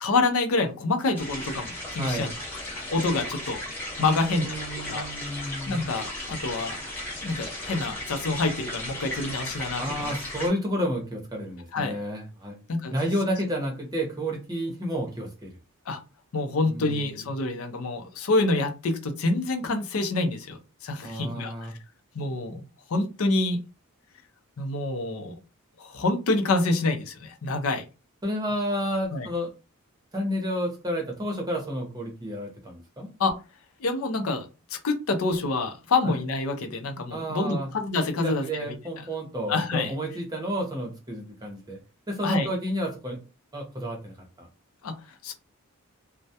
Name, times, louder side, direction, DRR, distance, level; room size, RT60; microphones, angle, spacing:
voice 1, 0.0-2.3 2.9-3.6 4.0-5.1 5.7-6.8 7.2-10.1 11.7-11.9 12.7-13.0 15.9-16.0 16.3-21.5 22.1-23.6 24.6-25.4 25.8-27.8 29.1-29.3 33.2-33.3 33.8-38.7 39.5-39.9 42.2-42.5 44.8-45.3, left 3 dB, 75° left, 5 dB, 0.5 m, -27 dB
sound 1, 1.1-10.5, left 1 dB, 10° left, 0.9 m, -36 dB
voice 2, 2.0-2.3 4.0-5.9 9.8-12.6 12.9-15.5 16.7-17.2 21.0-21.7 28.2-29.5 30.1-33.1 36.0-36.2 37.1-37.7 38.2-41.8 42.1-43.2 43.5-44.5, equal, 20° right, 0 dB, 0.7 m, -31 dB
2.2 x 2.1 x 2.7 m, 0.30 s
head